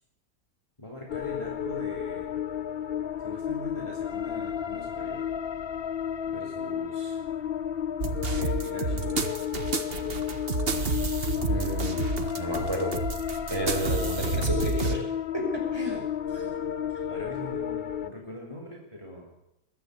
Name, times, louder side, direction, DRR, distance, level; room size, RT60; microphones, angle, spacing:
voice 1, 0.8-2.3 3.2-5.3 6.3-7.2 8.3-9.3 16.3-16.5 17.1-19.3, left 1 dB, 20° left, -1 dB, 3.7 m, -42 dB
sound 1, 1.1-18.1, left 9 dB, 45° left, 1.0 m, -32 dB
sound 2, 8.0-15.0, right 3 dB, 40° right, 1.6 m, -30 dB
voice 2, 11.5-12.0 12.4-12.9 13.5-15.0 15.3-16.1, equal, 15° right, 0 dB, 6.2 m, -31 dB
21.5 x 13.0 x 9.8 m, 0.84 s
omnidirectional pair, 1.6 m